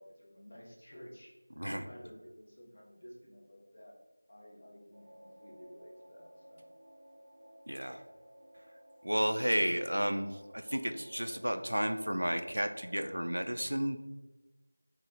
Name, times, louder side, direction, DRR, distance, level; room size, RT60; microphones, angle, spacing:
voice 1, 0.0-1.3 1.6-4.0 4.3-6.6, equal, 35° left, -4 dB, 0.8 m, -53 dB
sound 1, 4.9-13.3, equal, 30° right, 0.7 m, -56 dB
voice 2, 7.7-8.0 9.0-14.0, equal, 90° right, 7 dB, 0.3 m, -32 dB
3.1 x 2.1 x 3.9 m, 1.1 s
figure-of-eight pair, 175°, 0 cm